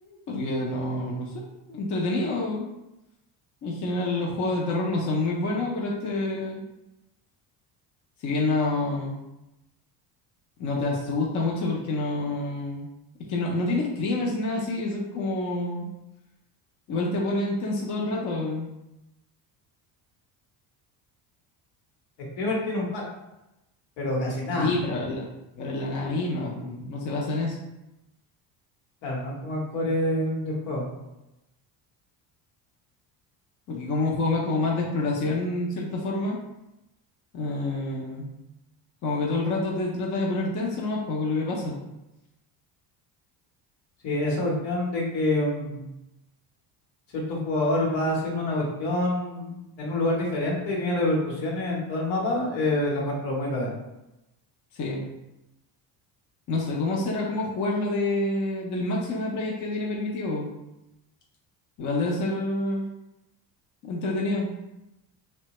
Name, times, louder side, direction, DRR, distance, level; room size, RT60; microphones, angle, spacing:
voice 1, 0.0-2.7 3.6-6.6 8.2-9.2 10.6-12.9 13.3-15.9 16.9-18.7 24.6-25.3 25.6-27.6 33.7-36.4 37.3-38.3 39.0-41.8 54.8-55.0 56.5-60.5 61.8-62.8 63.8-64.5, left 2 dB, 40° left, -3 dB, 0.5 m, -27 dB
voice 2, 22.4-23.0 24.0-24.7 29.0-30.9 44.0-45.8 47.1-53.7, left 1 dB, 70° left, -3 dB, 1.0 m, -27 dB
2.7 x 2.2 x 2.9 m, 0.94 s
cardioid pair, 105°, 45 cm